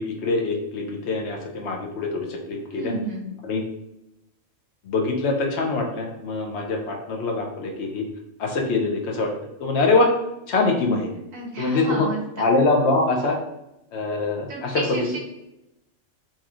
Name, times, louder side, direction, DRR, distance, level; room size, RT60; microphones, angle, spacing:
voice 1, 0.0-2.9 3.4-3.6 4.9-8.0 8.4-9.3 9.6-10.2 10.5-11.1 11.6-12.1 12.4-13.4 13.9-14.8, left 3 dB, 60° left, 1 dB, 0.9 m, -23 dB
voice 2, 2.7-3.3 11.3-12.5 14.5-15.2, right 3 dB, 75° right, 0 dB, 1.4 m, -31 dB
6.3 x 2.8 x 2.4 m, 0.89 s
omnidirectional pair, 1.5 m